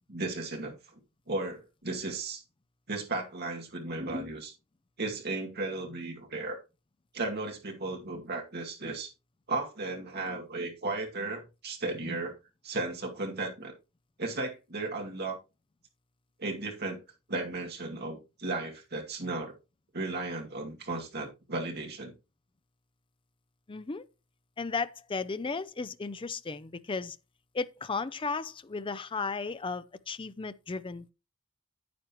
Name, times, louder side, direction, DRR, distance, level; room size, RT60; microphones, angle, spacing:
voice 1, 0.1-0.7 1.3-2.4 2.9-4.5 5.0-6.6 7.1-9.1 9.5-12.4 12.6-13.7 14.2-15.4 16.4-17.0 17.3-19.5 19.9-22.1, right 2 dB, 55° right, 2.3 m, -35 dB
voice 2, 23.7-24.0 24.6-27.2 27.5-31.1, left 4 dB, 25° left, 0.5 m, -35 dB
9.3 x 9.1 x 3.0 m
head